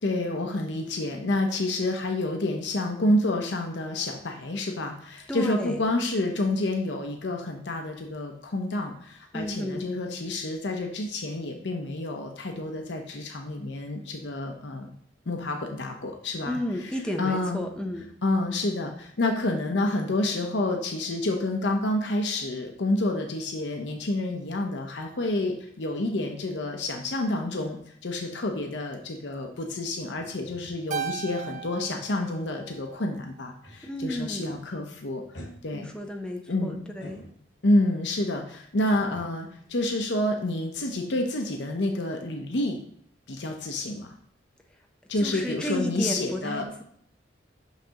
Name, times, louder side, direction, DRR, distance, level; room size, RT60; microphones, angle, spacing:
voice 1, 0.0-14.9 15.3-17.6 18.2-35.9 36.5-36.9 37.6-42.8 43.3-44.1 45.1-46.7, left 1 dB, 75° left, 3 dB, 0.7 m, -29 dB
voice 2, 5.3-5.8 9.3-9.9 16.5-18.1 33.8-34.6 35.7-36.8 37.0-37.2 45.2-46.8, equal, 5° left, 2 dB, 0.6 m, -32 dB
sound 1, 29.5-34.2 34.5-34.8 35.3-37.8 38.9-40.8 41.1-41.3, left 1 dB, 90° left, 1.4 m, -50 dB
Keyboard (musical), 30.9-33.4, right 7 dB, 45° right, 0.3 m, -37 dB
6.3 x 5.7 x 2.9 m, 0.65 s
head